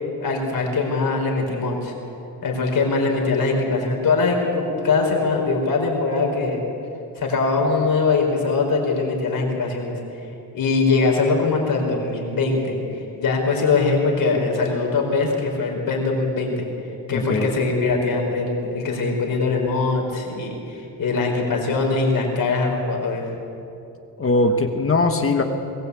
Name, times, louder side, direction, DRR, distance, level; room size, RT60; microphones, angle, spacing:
voice 1, 0.2-1.9 2.4-6.6 7.2-10.3 10.5-16.6 17.1-23.3, left 3 dB, 55° left, 1 dB, 5.0 m, -22 dB
voice 2, 17.1-17.5 24.2-25.4, left 2 dB, 35° left, 5 dB, 1.4 m, -20 dB
21.5 x 19.5 x 8.4 m, 2.8 s
wide cardioid pair, 160°, 40 cm